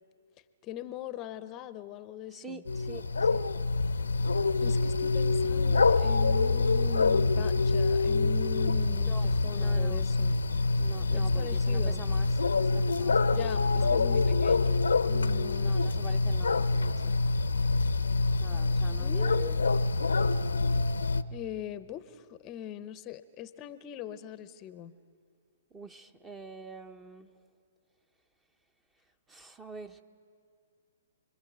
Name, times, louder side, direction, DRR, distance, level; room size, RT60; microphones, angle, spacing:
voice 1, 0.6-2.6 4.6-10.4 11.1-12.0 13.3-15.8 19.0-19.6 21.3-24.9, left 11 dB, 30° left, 13 dB, 0.8 m, -41 dB
voice 2, 2.3-3.4 9.1-10.0 10.8-14.0 15.6-17.1 18.4-19.6 25.7-27.3 29.3-30.0, right 3 dB, 15° right, 9 dB, 1.0 m, -46 dB
sound 1, 2.6-21.2, left 3 dB, 90° left, 0.8 m, -26 dB
29.0 x 22.0 x 8.1 m, 2.2 s
hypercardioid pair, 130°, 0 cm